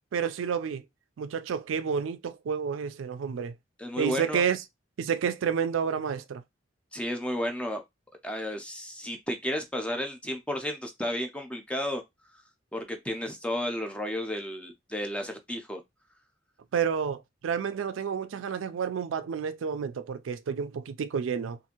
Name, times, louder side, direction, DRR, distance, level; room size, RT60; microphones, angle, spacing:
voice 1, 0.1-0.8 1.2-3.5 4.0-4.6 5.0-6.4 16.7-21.6, right 7 dB, 90° right, 0.4 m, -30 dB
voice 2, 3.8-4.4 6.9-7.8 8.2-12.0 12.7-15.8, left 1 dB, 5° left, 0.5 m, -32 dB
2.6 x 2.5 x 2.8 m
head